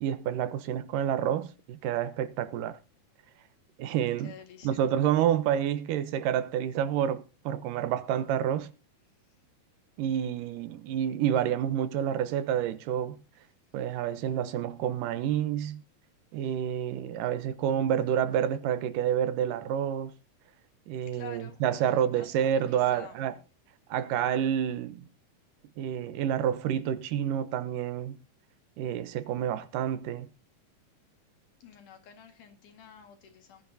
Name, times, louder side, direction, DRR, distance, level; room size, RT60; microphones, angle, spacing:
voice 1, 0.0-2.8 3.8-4.3 4.6-8.7 10.0-13.2 13.7-15.8 16.3-20.1 20.9-23.3 23.9-25.1 25.8-28.2 28.8-30.3, right 10 dB, 80° right, 2.4 m, -29 dB
voice 2, 4.2-4.8 21.1-22.3 22.7-23.2 31.6-33.6, left 6 dB, 70° left, 3.3 m, -49 dB
19.0 x 10.5 x 2.7 m
omnidirectional pair, 3.8 m